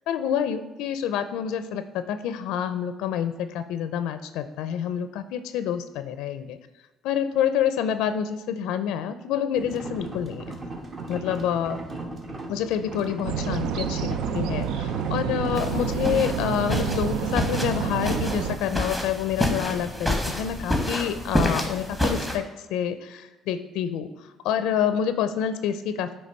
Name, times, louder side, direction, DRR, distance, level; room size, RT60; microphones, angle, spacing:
voice 1, 0.1-6.6 7.0-10.6 11.1-11.8 12.5-26.2, left 9 dB, 85° left, 11 dB, 0.4 m, -27 dB
sound 1, 9.5-15.9, right 2 dB, 30° right, 1.2 m, -37 dB
sound 2, 13.2-18.6, right 7 dB, 80° right, 0.5 m, -28 dB
sound 3, 15.6-22.4, left 1 dB, 5° right, 1.3 m, -28 dB
9.5 x 3.3 x 5.3 m, 1.1 s
cardioid pair, 115°, 0 cm